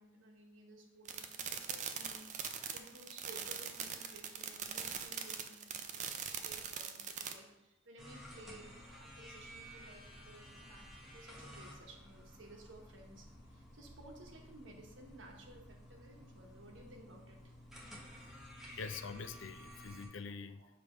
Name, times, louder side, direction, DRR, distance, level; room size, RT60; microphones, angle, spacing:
voice 1, 0.0-17.5 20.2-20.3 20.6-20.7, right 1 dB, 85° right, 2 dB, 1.1 m, -57 dB
sound 1, 1.1-7.3, right 7 dB, 40° right, 0.5 m, -42 dB
sound 2, 8.0-20.1, equal, ahead, 1.0 m, -54 dB
voice 2, 18.2-20.6, left 5 dB, 85° left, 10 dB, 0.5 m, -46 dB
7.2 x 3.4 x 5.0 m, 0.96 s
head